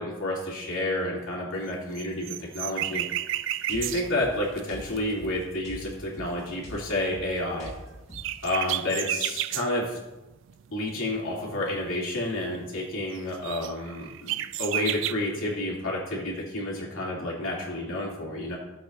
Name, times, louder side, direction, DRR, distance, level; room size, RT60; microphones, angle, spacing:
voice 1, 0.0-3.1 3.7-7.7 8.4-10.0 10.7-14.3 14.6-18.6, left 1 dB, 75° left, -4 dB, 2.7 m, -30 dB
sound 1, 1.7-5.5 7.3-7.4 7.7-7.8 8.1-9.7 10.3-12.1 12.3-12.6 12.8-12.9 13.2-15.1, right 13 dB, 65° right, 0.3 m, -32 dB
sound 2, 3.7-8.4, equal, 35° left, 3.5 m, -44 dB
14.5 x 7.7 x 2.6 m, 1.1 s
head